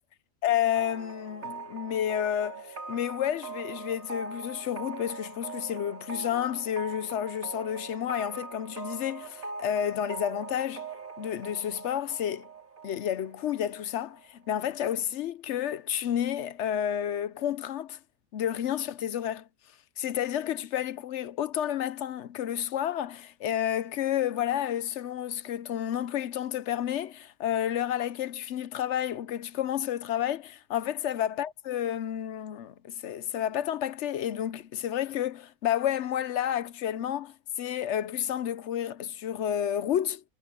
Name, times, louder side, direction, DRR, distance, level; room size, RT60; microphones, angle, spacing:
voice 1, 0.4-10.9 11.2-12.5 12.8-18.0 18.3-19.5 20.0-40.2, left 10 dB, 65° left, 0.8 m, -30 dB
sound 1, 0.8-14.3, right 4 dB, 70° right, 3.7 m, -42 dB
omnidirectional pair, 1.5 m